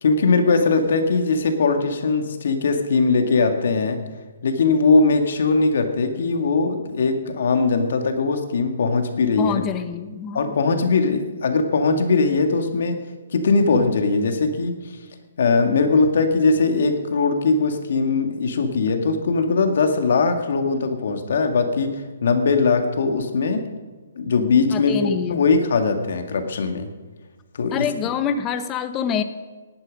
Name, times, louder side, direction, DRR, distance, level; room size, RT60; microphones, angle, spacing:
voice 1, 0.0-4.0 4.4-9.6 10.3-13.0 13.3-14.8 15.4-23.7 24.2-26.9 27.5-27.9, left 4 dB, 65° left, 6 dB, 2.0 m, -20 dB
voice 2, 9.4-10.5 24.7-25.4 27.7-29.2, left 8 dB, 20° left, 10 dB, 0.9 m, -25 dB
18.5 x 11.0 x 5.3 m, 1.3 s
hypercardioid pair, 160°, 0 cm